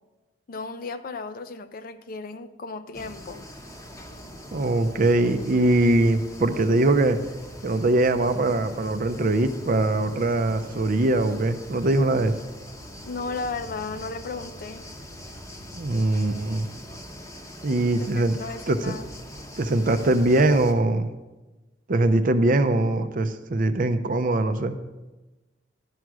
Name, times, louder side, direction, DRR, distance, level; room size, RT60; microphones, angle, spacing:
voice 1, 0.5-3.5 13.0-14.9 18.0-19.1, left 4 dB, 50° left, 11 dB, 0.5 m, -35 dB
sound 1, 2.9-20.7, equal, 15° left, 0.8 m, -42 dB
voice 2, 4.5-7.2 7.6-12.3 15.7-16.7 17.6-18.4 18.7-19.0 19.6-21.1 21.9-24.8, right 2 dB, 45° right, 10 dB, 0.5 m, -22 dB
11.5 x 4.7 x 6.2 m, 1.1 s
head